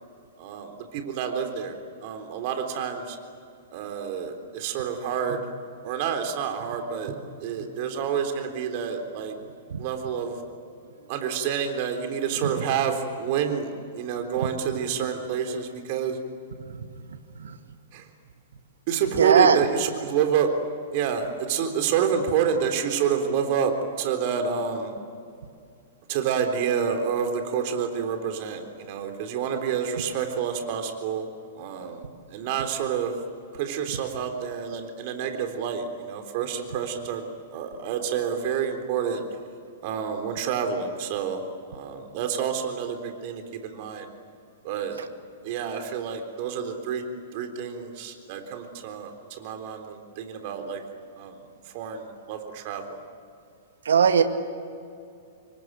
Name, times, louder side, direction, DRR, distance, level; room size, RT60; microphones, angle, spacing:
voice 1, 0.4-3.2 3.7-5.4 5.8-9.3 9.8-10.4 11.1-16.2 17.9-18.0 18.9-20.5 20.9-23.7 24.0-25.0 26.1-31.3 31.5-32.0 32.3-33.2 33.6-37.2 37.5-39.2 39.8-41.4 41.7-44.1 44.6-45.0 45.4-47.0 47.3-50.8 51.2-51.4 51.7-53.0, right 7 dB, 50° right, 6 dB, 3.7 m, -28 dB
voice 2, 19.2-19.6 53.9-54.2, right 7 dB, 70° right, 8 dB, 1.9 m, -18 dB
27.0 x 23.5 x 9.2 m, 2.4 s
figure-of-eight pair, 105°, 0 cm